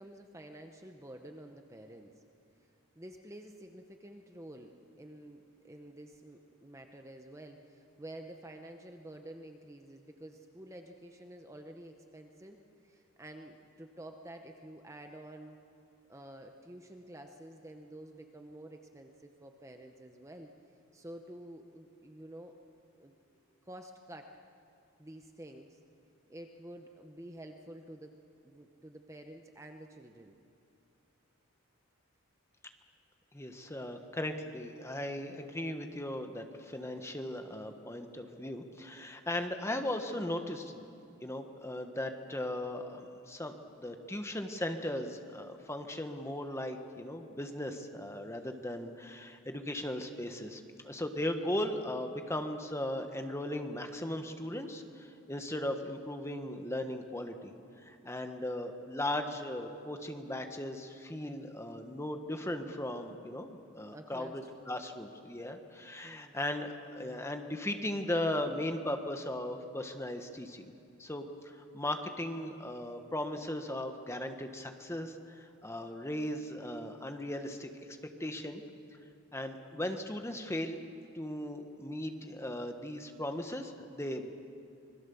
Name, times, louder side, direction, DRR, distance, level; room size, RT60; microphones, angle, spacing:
voice 1, 0.0-2.2 2.9-15.6 16.1-20.5 20.9-22.6 22.9-23.1 23.6-24.4 25.0-25.8 26.3-28.2 28.4-30.4 63.9-64.7 66.0-66.4, right 1 dB, 15° right, 4 dB, 0.9 m, -50 dB
voice 2, 33.3-40.8 41.2-57.5 57.8-70.7 71.0-77.9 78.2-78.6 79.3-80.8 81.1-84.3, left 1 dB, 10° left, 6 dB, 1.2 m, -37 dB
26.0 x 21.0 x 7.0 m, 2.6 s
head